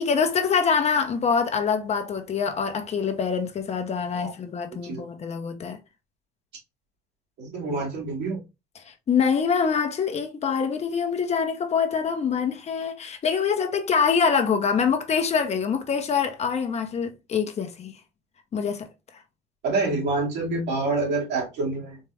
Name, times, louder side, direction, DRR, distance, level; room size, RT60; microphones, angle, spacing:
voice 1, 0.0-5.8 8.9-17.9 18.5-18.9, left 6 dB, 40° left, 0.9 m, -25 dB
voice 2, 4.7-5.0 7.4-8.4 19.6-22.0, right 3 dB, 80° right, 2.5 m, -27 dB
4.4 x 2.5 x 3.3 m
cardioid pair, 110°, 17 cm